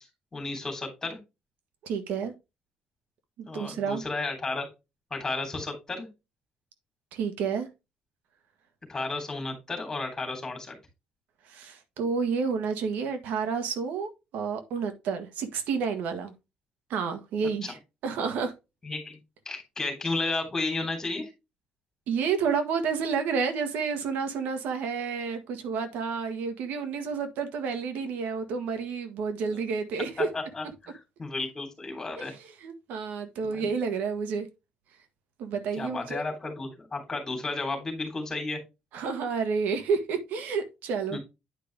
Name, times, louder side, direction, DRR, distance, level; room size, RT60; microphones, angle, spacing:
voice 1, 0.3-1.2 3.4-4.7 5.1-6.0 8.9-10.7 17.6-17.7 18.8-19.2 19.4-21.3 29.5-29.6 30.2-32.3 33.4-33.7 35.7-38.6 41.1-41.2, left 3 dB, 20° left, 3.3 m, -33 dB
voice 2, 1.8-2.3 3.4-4.0 7.1-7.7 11.5-16.3 16.9-17.8 18.0-18.5 22.1-30.3 32.2-32.4 32.6-34.5 35.4-36.2 38.9-41.2, right 5 dB, 85° right, 1.5 m, -30 dB
9.7 x 5.2 x 3.4 m
cardioid pair, 150°, 3 cm